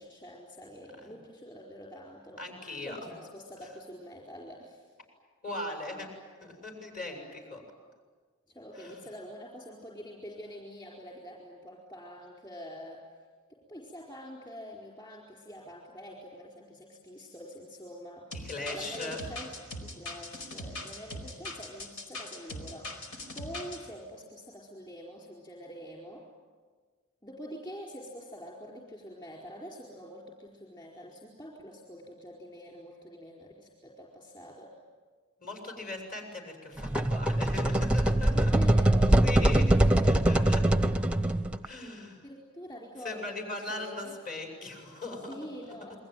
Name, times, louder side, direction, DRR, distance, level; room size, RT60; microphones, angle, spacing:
voice 1, 0.0-2.4 2.8-4.8 8.5-13.0 13.7-19.5 19.8-22.9 23.3-26.2 27.2-34.7 38.3-40.1 42.2-44.1 45.3-46.0, equal, 20° left, -3 dB, 4.5 m, -45 dB
voice 2, 2.4-3.2 5.4-6.1 6.4-7.6 8.8-9.0 18.3-19.2 35.4-38.5 39.2-39.6 40.1-40.6 41.6-42.2 43.0-45.3, left 2 dB, 40° left, 2 dB, 6.9 m, -39 dB
sound 1, 18.3-23.8, left 1 dB, 80° left, 4.7 m, -41 dB
sound 2, 36.8-41.7, right 1 dB, 5° right, 0.8 m, -23 dB
28.5 x 22.5 x 9.3 m, 1.5 s
head